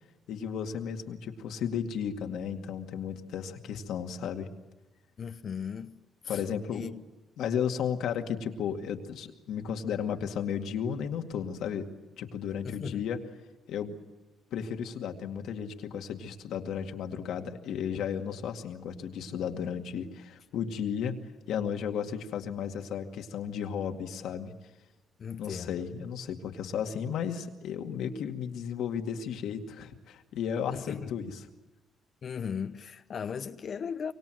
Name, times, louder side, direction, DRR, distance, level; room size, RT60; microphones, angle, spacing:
voice 1, 0.3-4.5 6.3-6.9 7.4-11.9 12.2-13.2 13.7-14.0 14.5-21.2 21.5-24.5 25.4-31.3, left 8 dB, 80° left, 2.2 m, -34 dB
voice 2, 5.2-6.0 6.2-6.4 6.7-7.0 12.6-13.1 25.2-25.9 30.7-31.1 32.2-34.1, left 7 dB, 50° left, 0.9 m, -37 dB
25.0 x 24.0 x 7.8 m
cardioid pair, 90°, 0 cm